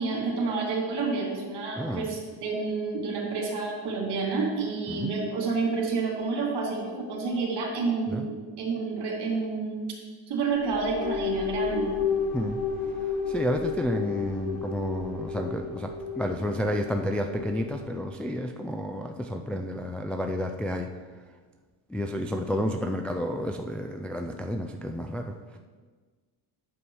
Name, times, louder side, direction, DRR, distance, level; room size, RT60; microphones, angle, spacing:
voice 1, 0.0-9.9 10.3-11.9, right 4 dB, 55° right, 0 dB, 2.9 m, -29 dB
voice 2, 1.8-2.1 4.9-5.1 8.1-8.3 12.3-12.6 13.3-15.9 16.2-20.9 21.9-25.6, equal, 5° left, 3 dB, 0.4 m, -30 dB
sound 1, 10.5-18.1, left 5 dB, 65° left, 2.7 m, -32 dB
8.3 x 7.1 x 4.7 m, 1.4 s
supercardioid pair, 95°, 49 cm